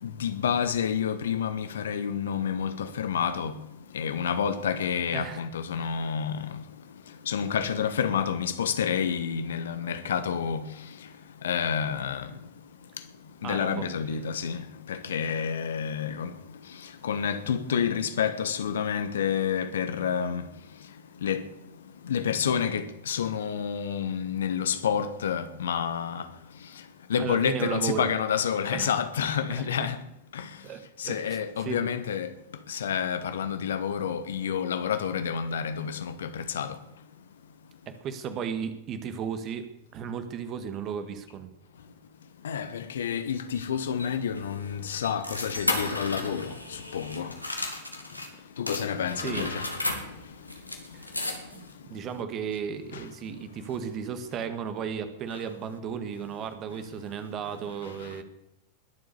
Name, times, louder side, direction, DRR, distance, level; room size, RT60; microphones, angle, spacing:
voice 1, 0.0-3.6 3.9-6.7 7.1-11.1 11.4-12.5 13.4-20.5 21.2-21.5 22.0-26.3 26.6-30.0 30.3-30.6 31.0-32.3 32.7-36.8 42.4-47.4 48.6-49.7 50.2-50.6 52.9-53.1 55.3-55.4 57.8-58.2, left 7 dB, 65° left, 1.3 m, -29 dB
voice 2, 13.4-13.9 27.2-28.1 28.7-28.9 29.5-29.9 30.6-31.2 31.6-31.9 37.8-39.7 39.9-41.5 49.2-49.5 50.9-51.2 51.5-58.2, right 7 dB, 35° right, 1.8 m, -35 dB
sound 1, 43.6-48.3 48.7-51.7, left 2 dB, 85° left, 2.2 m, -34 dB
21.0 x 7.9 x 6.9 m
figure-of-eight pair, 90°, 0 cm